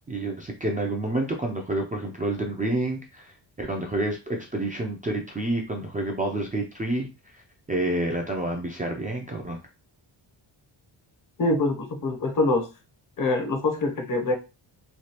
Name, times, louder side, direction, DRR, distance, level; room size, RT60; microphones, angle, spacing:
voice 1, 0.1-3.3 3.6-7.1 7.7-9.6, right 1 dB, 20° right, -1 dB, 0.4 m, -28 dB
voice 2, 11.4-12.7 13.2-14.3, left 2 dB, 45° left, 3 dB, 0.7 m, -24 dB
3.2 x 2.3 x 2.8 m, 0.29 s
wide cardioid pair, 150°, 46 cm